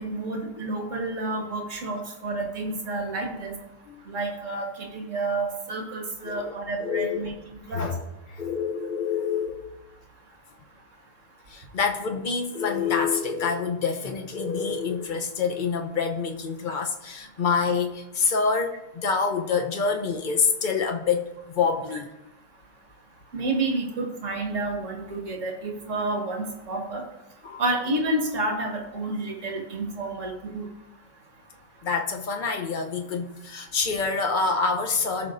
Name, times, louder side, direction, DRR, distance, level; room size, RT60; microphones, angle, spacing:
voice 1, 0.0-3.6 4.1-7.9 23.3-27.0 27.6-30.7, right 2 dB, 45° right, 1 dB, 1.9 m, -30 dB
voice 2, 6.2-7.3 7.7-8.0 8.3-9.6 11.5-22.1 27.4-27.6 31.8-35.3, left 5 dB, 50° left, 4 dB, 0.6 m, -27 dB
15.0 x 6.0 x 2.6 m, 0.99 s
omnidirectional pair, 1.8 m